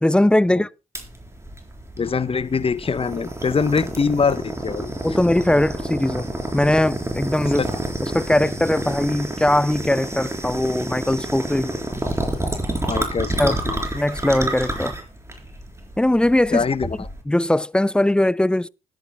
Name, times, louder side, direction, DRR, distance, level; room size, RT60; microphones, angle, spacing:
voice 1, 0.0-0.7 5.0-7.7 8.0-11.8 13.4-13.6 13.9-15.0 16.0-16.6 17.3-18.7, left 1 dB, 5° left, 0.4 m, -20 dB
sound 1, 0.9-17.2, right 1 dB, 15° right, 4.0 m, -29 dB
voice 2, 2.0-4.9 7.6-7.7 12.9-13.8 16.5-17.1, left 5 dB, 30° left, 1.0 m, -23 dB
19.5 x 9.1 x 2.3 m
hypercardioid pair, 40°, 18 cm